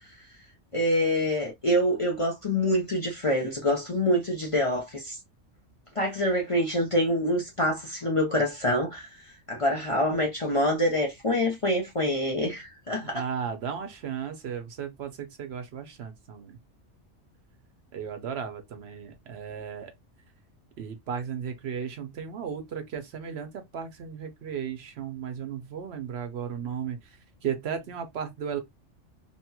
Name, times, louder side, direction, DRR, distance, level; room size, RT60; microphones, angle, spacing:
voice 1, 0.7-5.2 6.0-9.2 9.5-13.2, left 1 dB, 35° left, 0.6 m, -26 dB
voice 2, 13.0-16.6 17.9-19.9 20.8-27.0 27.4-28.6, right 7 dB, 65° right, 0.8 m, -35 dB
2.9 x 2.8 x 2.2 m
omnidirectional pair, 1.2 m